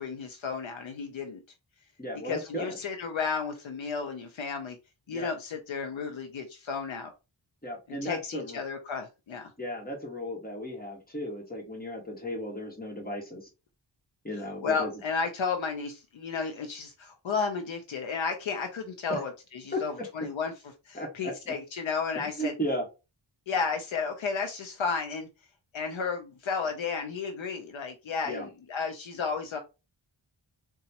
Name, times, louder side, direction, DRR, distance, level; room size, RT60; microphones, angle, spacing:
voice 1, 0.0-1.4 2.2-4.8 5.1-7.1 8.0-9.5 14.6-19.3 19.6-20.5 20.9-22.5 23.5-25.3 25.7-29.6, left 5 dB, 70° left, 5 dB, 0.6 m, -33 dB
voice 2, 2.0-2.8 5.1-5.3 7.6-8.6 9.6-13.5 14.2-14.9 19.1-19.2 19.7-20.1 20.9-21.3 22.1-22.8 28.2-28.5, equal, 20° left, 0 dB, 1.4 m, -35 dB
3.9 x 2.3 x 2.8 m, 0.28 s
wide cardioid pair, 85°, 48 cm